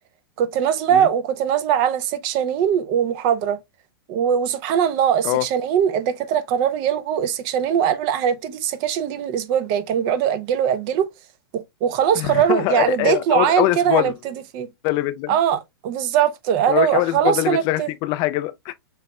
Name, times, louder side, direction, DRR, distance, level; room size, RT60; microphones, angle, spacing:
voice 1, 0.4-3.6 4.1-11.1 11.5-14.7 15.3-17.9, right 9 dB, 40° right, 0.7 m, -21 dB
voice 2, 12.2-14.1 14.8-15.4 16.7-18.7, left 16 dB, 35° left, 0.4 m, -23 dB
6.7 x 3.0 x 2.2 m
hypercardioid pair, 110°, 12 cm